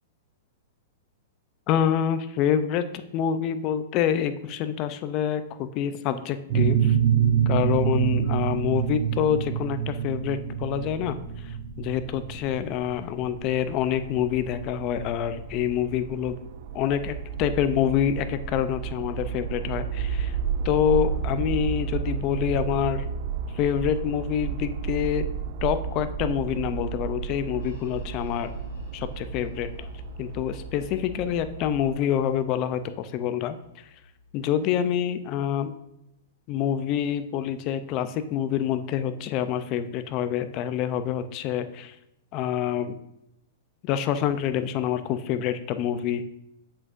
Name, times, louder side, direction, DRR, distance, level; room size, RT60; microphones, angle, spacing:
voice 1, 1.7-7.0 7.5-16.4 16.7-20.4 20.6-23.1 23.5-25.2 25.6-28.5 28.9-29.9 30.2-33.8 34.3-35.7 36.5-42.0 42.3-43.0 43.8-46.3, left 9 dB, 35° left, 11 dB, 0.5 m, -27 dB
sound 1, 6.5-15.9, right 9 dB, 35° right, 2.0 m, -26 dB
sound 2, 13.2-31.9, right 7 dB, 55° right, 0.4 m, -33 dB
sound 3, 27.0-34.7, left 5 dB, 85° left, 2.3 m, -45 dB
7.5 x 6.2 x 2.5 m, 0.85 s
hypercardioid pair, 145°, 0 cm